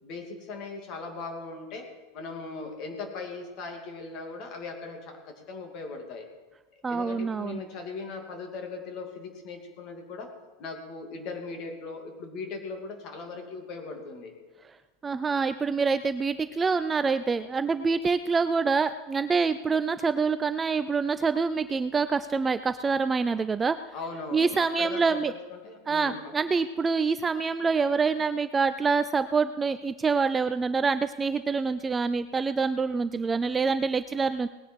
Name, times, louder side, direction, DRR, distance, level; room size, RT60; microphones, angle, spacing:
voice 1, 0.0-1.9 2.1-6.3 6.7-10.3 10.6-14.3 23.9-26.3, left 4 dB, 35° left, 3 dB, 2.6 m, -39 dB
voice 2, 6.8-7.6 15.0-23.8 24.3-25.3 25.9-34.5, right 4 dB, 10° right, 12 dB, 0.3 m, -26 dB
19.0 x 10.0 x 4.7 m, 1.2 s
supercardioid pair, 165°, 0 cm